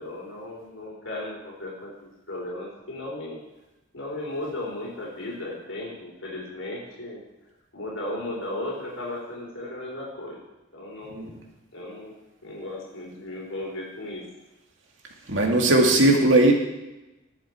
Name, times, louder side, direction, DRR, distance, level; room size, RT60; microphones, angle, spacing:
voice 1, 0.0-3.4 3.9-7.2 7.7-10.4 10.7-11.3 11.7-12.1 12.4-14.3, left 1 dB, 75° left, -3 dB, 4.0 m, -35 dB
voice 2, 15.3-16.5, right 2 dB, 70° right, 1 dB, 2.3 m, -18 dB
20.0 x 7.4 x 4.6 m, 1.0 s
head